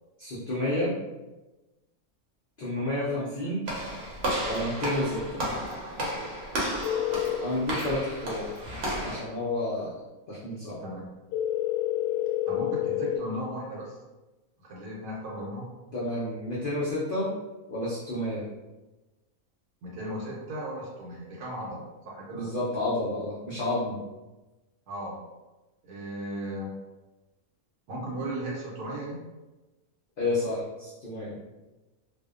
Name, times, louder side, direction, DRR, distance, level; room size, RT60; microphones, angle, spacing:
voice 1, 0.2-1.0 2.6-3.7 4.4-5.4 7.4-8.5 8.9-9.9 10.3-10.8 15.9-17.3 17.7-18.5 22.3-24.0 30.2-31.4, left 1 dB, 70° left, -7 dB, 0.5 m, -30 dB
Walk footsteps / Slam, 3.7-9.2, right 1 dB, 55° right, 0.8 m, -33 dB
sound 1, 6.8-7.4 11.3-13.2, left 13 dB, 90° left, 1.1 m, -28 dB
voice 2, 12.5-14.0 14.6-15.7 19.8-22.5 24.9-25.2 25.8-26.7 27.9-29.2, right 1 dB, 90° right, -4 dB, 1.1 m, -36 dB
2.6 x 2.1 x 2.3 m, 1.1 s
omnidirectional pair, 1.5 m